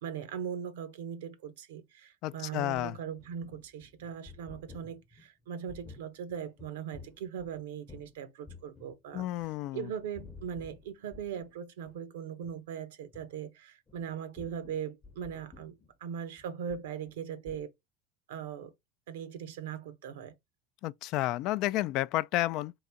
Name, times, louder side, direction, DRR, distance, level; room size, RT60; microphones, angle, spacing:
voice 1, 0.0-9.3 9.7-17.7 18.3-18.7 19.1-20.3, right 8 dB, 85° right, 0.9 m, -40 dB
voice 2, 2.2-3.0 9.1-9.9 20.8-22.7, left 16 dB, 60° left, 0.3 m, -31 dB
sound 1, 2.3-8.2 8.4-9.7 10.0-11.5 11.8-12.0 12.3-12.6 13.1-13.3 13.9-17.2 17.5-17.7, left 4 dB, 25° left, 0.8 m, -53 dB
3.9 x 2.6 x 4.5 m
supercardioid pair, 110°, 0 cm